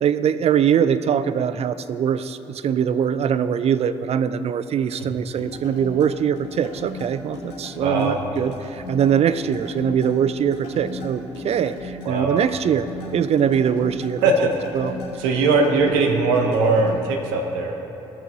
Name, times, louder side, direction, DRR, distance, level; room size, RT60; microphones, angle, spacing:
voice 1, 0.0-14.2 14.7-14.9, right 8 dB, 45° right, 13 dB, 0.4 m, -22 dB
sound 1, 5.4-16.9, left 2 dB, 80° left, 2.1 m, -37 dB
voice 2, 7.8-8.2 12.0-12.4 14.2-14.5 15.2-17.8, right 3 dB, 80° right, 3 dB, 0.8 m, -20 dB
16.0 x 6.2 x 2.9 m, 3.0 s
hypercardioid pair, 45°, 15 cm